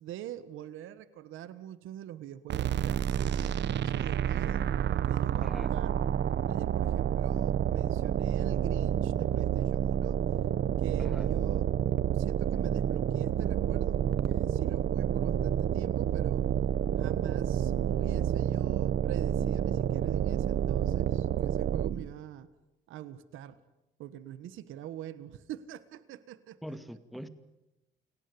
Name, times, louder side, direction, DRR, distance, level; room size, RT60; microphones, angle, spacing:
voice 1, 0.0-4.7 5.0-6.0 6.5-10.2 10.8-16.5 16.9-22.5 22.9-23.6 24.0-26.8 27.2-27.3, right 11 dB, 90° right, 15 dB, 1.4 m, -44 dB
sound 1, 2.5-22.1, right 10 dB, 60° right, 0.9 m, -29 dB
voice 2, 26.6-27.3, equal, ahead, 10 dB, 2.3 m, -42 dB
29.5 x 18.5 x 9.8 m, 0.97 s
cardioid pair, 90°, 20 cm